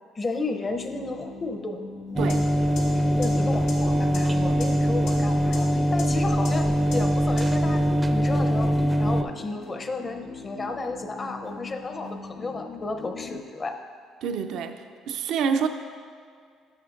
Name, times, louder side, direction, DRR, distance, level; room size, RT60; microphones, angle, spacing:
voice 1, 0.2-1.8 3.2-8.7 9.0-13.8, left 3 dB, 30° left, 6 dB, 0.6 m, -33 dB
sound 1, 0.7-13.4, left 4 dB, 65° left, 2.2 m, -41 dB
sound 2, 2.2-9.2, equal, 10° right, 0.4 m, -22 dB
sound 3, 2.3-2.4 2.8-2.9 3.2-3.3 3.7-3.8 4.1-4.2 4.6-4.7 5.1-5.2 5.5-5.6 6.0-6.1 6.4-6.5 6.9-7.0 7.4-7.5, left 6 dB, 90° left, 1.9 m, -37 dB
voice 2, 14.2-15.7, right 6 dB, 70° right, 8 dB, 0.4 m, -27 dB
10.5 x 7.6 x 2.5 m, 2.1 s
cardioid pair, 105°, 0 cm